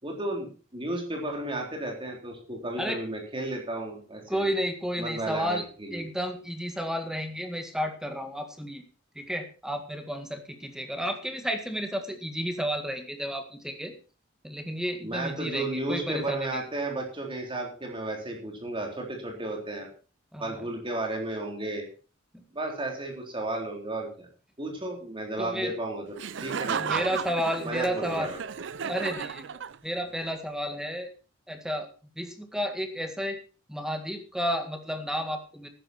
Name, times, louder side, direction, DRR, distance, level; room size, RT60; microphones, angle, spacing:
voice 1, 0.0-4.5 5.0-6.0 15.0-19.9 20.4-21.9 22.5-24.3 24.6-26.1 26.4-27.1 27.6-28.4, right 2 dB, 25° right, 1 dB, 3.7 m, -33 dB
voice 2, 4.3-8.8 9.2-13.9 14.4-16.6 20.3-20.7 22.3-22.4 25.4-25.7 26.7-28.3 28.8-29.4 29.8-31.1 31.5-31.9 32.2-33.4 33.7-35.7, equal, 5° right, 6 dB, 1.8 m, -32 dB
Laughter, 26.2-30.1, right 6 dB, 65° right, 0.6 m, -34 dB
13.0 x 10.5 x 4.4 m, 0.36 s
head